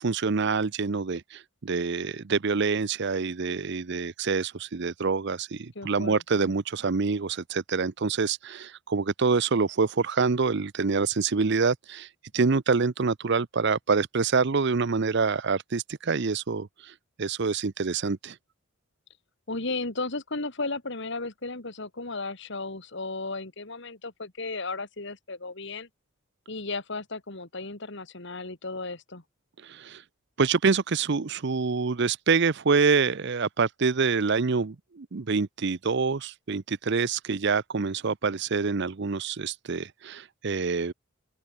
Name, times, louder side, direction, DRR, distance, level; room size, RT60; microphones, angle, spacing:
voice 1, 0.0-12.1 12.3-18.4 29.6-30.0 30.4-40.9, right 4 dB, 55° right, 0.6 m, -26 dB
voice 2, 5.8-6.5 19.5-25.9 26.5-29.2, left 3 dB, 60° left, 2.4 m, -35 dB
open air
head